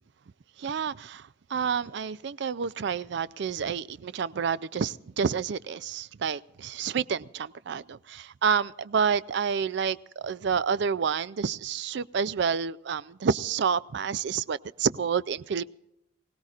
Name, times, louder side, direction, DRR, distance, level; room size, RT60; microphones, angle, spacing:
voice 1, 0.6-15.7, right 6 dB, 65° right, 0.4 m, -29 dB
24.5 x 17.0 x 2.4 m
head